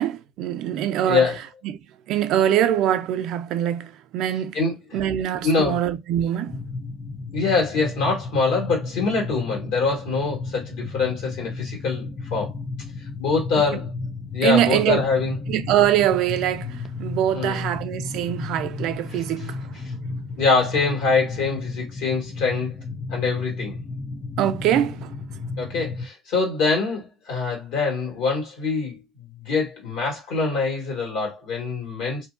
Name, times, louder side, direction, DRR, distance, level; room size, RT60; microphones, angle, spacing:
voice 1, 0.0-1.3 1.6-1.8 2.1-4.6 4.9-6.6 13.7-13.8 14.4-15.1 15.5-19.7 24.4-25.1, right 11 dB, 65° right, 0.3 m, -23 dB
voice 2, 1.0-1.4 4.5-5.0 5.4-5.8 7.3-12.0 12.3-12.5 13.2-13.9 14.3-15.4 17.3-17.6 20.4-22.8 23.1-23.8 25.6-29.0 29.4-32.3, left 4 dB, 80° left, 1.5 m, -24 dB
sound 1, 6.5-26.1, left 3 dB, 30° left, 0.4 m, -33 dB
2.6 x 2.1 x 2.5 m
supercardioid pair, 85°, 0 cm